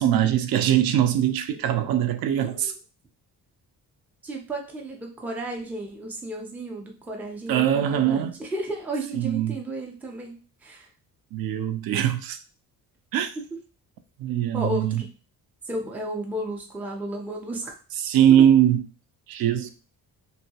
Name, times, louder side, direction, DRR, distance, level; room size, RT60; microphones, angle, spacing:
voice 1, 0.0-2.7 7.5-8.3 9.1-9.5 11.3-12.4 13.1-13.3 14.2-15.0 18.0-18.8 19.3-19.7, right 10 dB, 70° right, 0.5 m, -21 dB
voice 2, 2.3-2.7 4.2-10.9 13.4-13.5 14.5-15.1 15.6-17.8 18.4-18.5, right 1 dB, 5° right, 0.4 m, -33 dB
3.0 x 2.6 x 2.8 m
cardioid pair, 175°, 37 cm